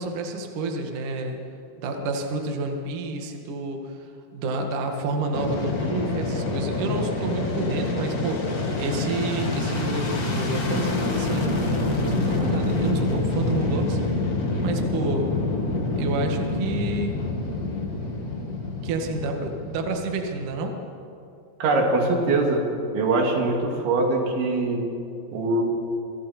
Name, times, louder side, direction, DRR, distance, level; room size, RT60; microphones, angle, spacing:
voice 1, 0.0-1.4 1.8-14.0 14.6-15.4 16.0-17.2 18.8-20.8, right 3 dB, 55° right, 3 dB, 2.9 m, -29 dB
Fixed-wing aircraft airplane, 5.3-20.5, left 3 dB, 45° left, 1.1 m, -27 dB
voice 2, 21.6-22.6 22.9-24.8 25.3-25.6, right 2 dB, 85° right, 0 dB, 5.0 m, -22 dB
29.0 x 24.0 x 4.4 m, 2.6 s
omnidirectional pair, 5.1 m